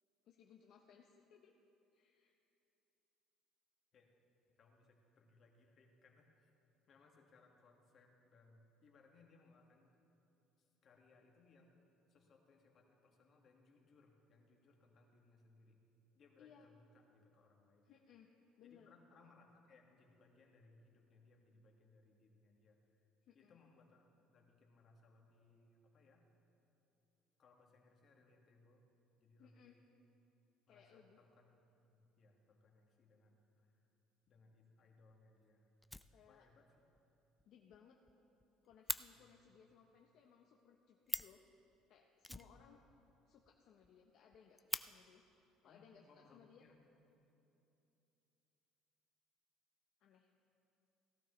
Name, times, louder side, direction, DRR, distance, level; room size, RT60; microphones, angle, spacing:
voice 1, 0.2-1.5 1.9-2.3 16.4-16.7 17.8-18.3 18.6-18.9 23.2-23.6 29.4-29.8 30.7-31.2 36.1-36.5 37.4-38.0 38.6-41.4 41.9-42.8 43.3-45.2 45.6-46.6 50.0-50.3, left 8 dB, 60° left, 1 dB, 0.8 m, -64 dB
voice 2, 4.5-6.5 6.9-10.0 10.6-11.7 12.1-15.8 16.1-17.8 18.6-23.0 23.3-24.1 24.3-26.3 27.4-28.8 29.2-29.8 30.7-33.8 34.3-35.7 36.3-36.7 39.1-39.4 42.3-42.6 45.6-46.8, left 3 dB, 45° left, 1 dB, 1.7 m, -68 dB
Fire, 34.6-34.7 35.1-35.2 35.4-35.5 35.8-36.6 36.9-37.0 37.4-37.5 37.7-37.8 38.1-39.0 40.8-40.9 41.0-41.4 42.2-43.1 43.4-43.5 43.8-43.9 44.3-44.8 45.9-46.0 46.6-47.2, left 1 dB, 5° left, 0.3 m, -44 dB
16.5 x 12.0 x 3.2 m, 2.9 s
cardioid pair, 115°, 0 cm